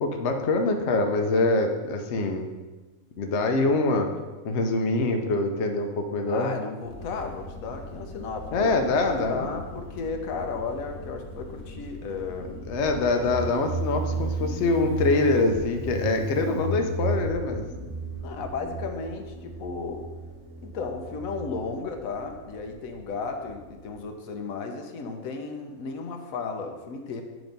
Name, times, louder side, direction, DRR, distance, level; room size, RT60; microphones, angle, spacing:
voice 1, 0.0-2.5 3.2-4.1 4.4-6.5 8.5-9.5 12.5-17.6, left 2 dB, 60° left, 4 dB, 0.9 m, -24 dB
voice 2, 6.3-8.7 9.1-12.5 18.2-20.1 20.6-27.2, left 4 dB, 80° left, 4 dB, 1.1 m, -34 dB
Motorcycle, 6.8-24.0, right 1 dB, 55° right, 1.9 m, -35 dB
7.8 x 3.0 x 5.2 m, 1.2 s
omnidirectional pair, 1.5 m